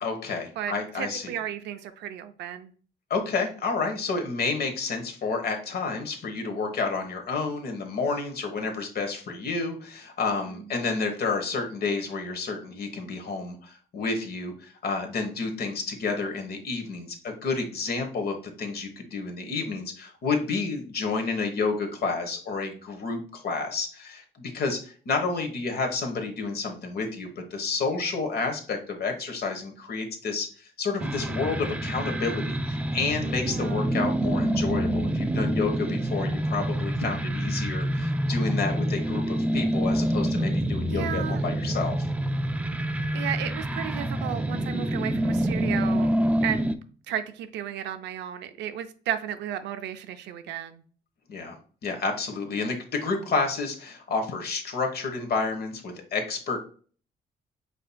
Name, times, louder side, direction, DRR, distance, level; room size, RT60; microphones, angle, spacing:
voice 1, 0.0-1.3 3.1-42.0 51.3-51.6 51.8-56.6, left 4 dB, 60° left, 1.2 m, -30 dB
voice 2, 0.6-2.7 10.5-10.6 33.4-33.9 40.9-41.4 43.1-46.1 46.4-46.7 47.1-50.8, right 10 dB, 90° right, 0.5 m, -33 dB
sound 1, 31.0-46.8, right 1 dB, 10° right, 0.3 m, -27 dB
5.1 x 4.2 x 2.2 m
cardioid pair, 85°, 18 cm